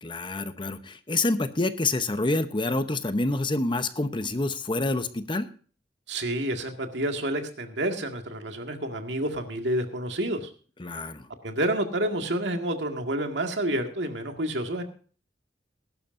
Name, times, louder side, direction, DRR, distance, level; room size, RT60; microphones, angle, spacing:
voice 1, 0.0-5.5 10.8-11.3, left 2 dB, 30° left, 10 dB, 0.9 m, -27 dB
voice 2, 6.1-10.5 11.4-14.8, right 1 dB, 85° right, 4 dB, 2.0 m, -29 dB
20.5 x 11.5 x 2.6 m, 0.40 s
head